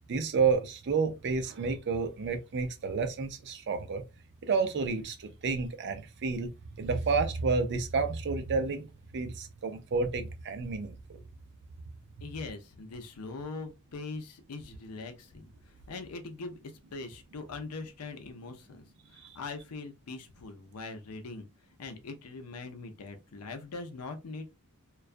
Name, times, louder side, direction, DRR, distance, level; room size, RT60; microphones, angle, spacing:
voice 1, 0.1-4.0 4.4-6.5 6.8-8.9 9.1-11.2 19.2-19.3, right 4 dB, 50° right, 0.5 m, -30 dB
voice 2, 12.2-16.6 16.9-21.5 21.8-24.5, left 3 dB, 80° left, 0.6 m, -42 dB
2.3 x 2.2 x 2.4 m
head